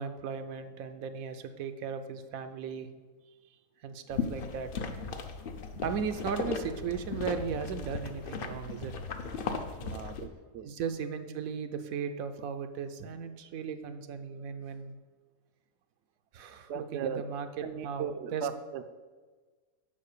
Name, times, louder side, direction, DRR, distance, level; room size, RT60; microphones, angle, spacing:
voice 1, 0.0-2.9 3.8-4.7 5.8-8.9 10.6-14.9 16.3-18.5, right 6 dB, 80° right, 8 dB, 1.1 m, -37 dB
sound 1, 4.1-10.3, left 4 dB, 50° left, 0.7 m, -37 dB
voice 2, 9.8-10.7 16.7-17.2 17.6-18.8, right 8 dB, 65° right, 9 dB, 0.7 m, -37 dB
7.5 x 5.1 x 6.6 m, 1.4 s
omnidirectional pair, 1.5 m